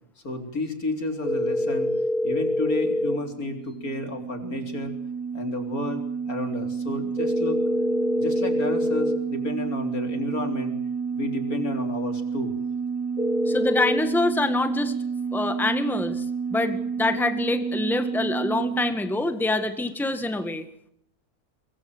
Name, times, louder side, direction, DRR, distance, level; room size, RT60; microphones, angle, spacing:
voice 1, 0.2-1.9 2.2-4.9 5.3-7.6 8.2-10.7 11.1-12.6, left 2 dB, 80° left, 5 dB, 4.1 m, -31 dB
sound 1, 1.2-3.2 7.2-9.2 13.2-14.0, left 1 dB, 35° left, 2.2 m, -25 dB
sound 2, 2.7-18.9, right 6 dB, 50° left, 6.4 m, -30 dB
voice 2, 13.5-14.9 15.3-16.2 16.5-20.6, left 2 dB, ahead, 9 dB, 1.6 m, -25 dB
23.0 x 23.0 x 7.9 m, 0.71 s
omnidirectional pair, 1.5 m